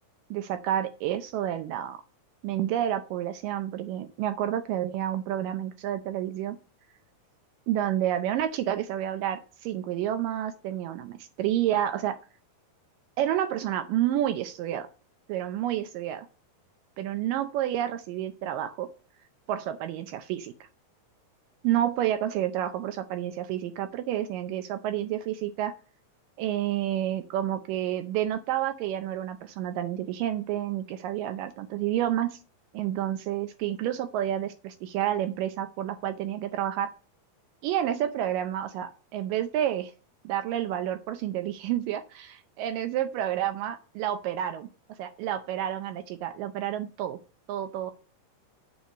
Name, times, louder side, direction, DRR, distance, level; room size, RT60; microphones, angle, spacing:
voice 1, 0.3-2.0 2.4-6.6 7.7-12.2 13.2-14.9 15.3-16.3 17.0-18.9 19.5-20.5 21.6-25.7 26.4-32.4 32.7-36.9 37.6-39.9 40.2-44.7 45.0-47.2 47.5-47.9, right 11 dB, 80° right, 8 dB, 2.1 m, -29 dB
8.1 x 4.6 x 6.5 m, 0.37 s
omnidirectional pair, 4.2 m